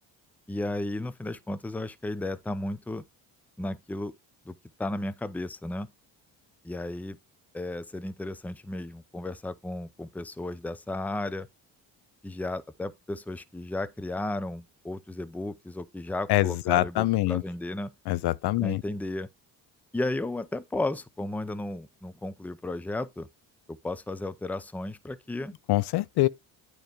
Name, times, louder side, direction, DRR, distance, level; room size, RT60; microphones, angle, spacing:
voice 1, 0.5-3.0 3.6-4.1 4.5-5.9 6.6-7.2 7.5-11.5 12.2-17.9 18.6-19.3 19.9-23.3 23.7-25.5, left 2 dB, 5° left, 0.5 m, -34 dB
voice 2, 16.3-17.4 18.1-18.8 25.7-26.3, left 17 dB, 70° left, 0.5 m, -24 dB
9.0 x 3.1 x 5.1 m
cardioid pair, 80°, 41 cm